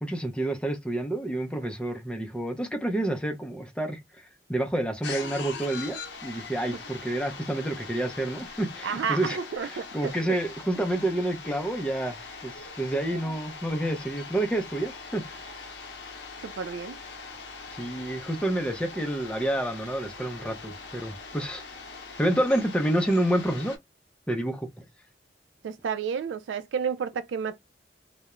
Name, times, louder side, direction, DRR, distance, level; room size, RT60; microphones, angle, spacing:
voice 1, 0.0-4.0 4.5-15.5 17.7-21.6 22.2-23.8 24.3-24.7, right 1 dB, 5° left, 0.5 m, -29 dB
sound 1, 5.0-23.8, left 4 dB, 70° left, 0.7 m, -42 dB
voice 2, 8.8-10.1 16.4-17.0 25.6-27.6, right 6 dB, 80° right, 0.4 m, -31 dB
2.3 x 2.0 x 2.9 m
head